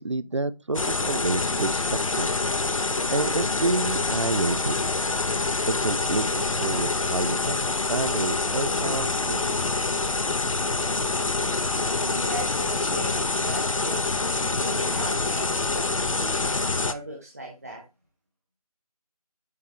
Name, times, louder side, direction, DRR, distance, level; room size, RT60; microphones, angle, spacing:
voice 1, 0.0-1.8 2.2-2.3 3.1-4.8 5.7-9.5, right 3 dB, 50° right, 0.4 m, -29 dB
sound 1, 0.7-16.9, left 3 dB, 60° left, 0.6 m, -26 dB
voice 2, 11.7-14.1 14.5-17.8, right 1 dB, 25° right, 0.8 m, -38 dB
8.3 x 3.4 x 4.4 m
figure-of-eight pair, 165°, 20 cm